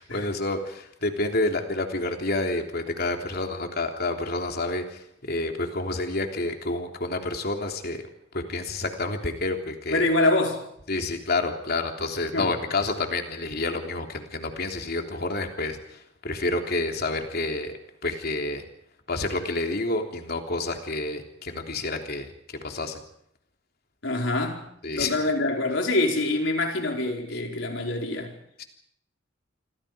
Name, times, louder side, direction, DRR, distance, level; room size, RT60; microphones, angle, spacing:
voice 1, 0.0-4.8 5.2-8.0 8.3-10.0 10.9-15.8 16.2-17.7 18.0-18.6 19.1-22.3 22.6-23.0 24.8-25.1 28.6-28.7, left 2 dB, 55° left, 3.3 m, -29 dB
voice 2, 9.9-10.7 12.3-12.5 24.0-24.6 24.9-28.3, left 2 dB, 70° left, 4.8 m, -25 dB
28.0 x 24.5 x 5.1 m
head